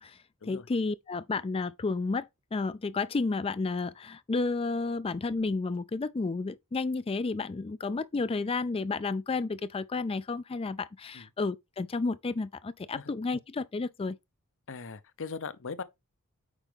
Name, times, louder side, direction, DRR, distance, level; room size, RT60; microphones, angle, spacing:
voice 1, 0.0-14.2, left 3 dB, 25° left, 0.4 m, -31 dB
voice 2, 14.7-15.8, left 5 dB, 60° left, 0.8 m, -39 dB
8.3 x 5.0 x 3.5 m
head